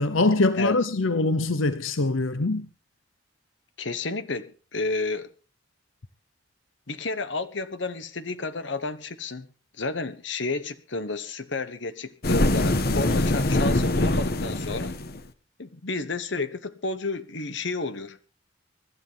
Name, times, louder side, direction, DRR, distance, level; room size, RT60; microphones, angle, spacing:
voice 1, 0.0-2.7, left 2 dB, 90° left, 0.9 m, -23 dB
voice 2, 3.8-5.3 6.9-9.5 9.8-14.9 15.6-18.3, left 3 dB, 70° left, 1.2 m, -31 dB
sound 1, 12.2-15.3, left 1 dB, 50° left, 1.2 m, -23 dB
23.5 x 12.0 x 3.5 m
head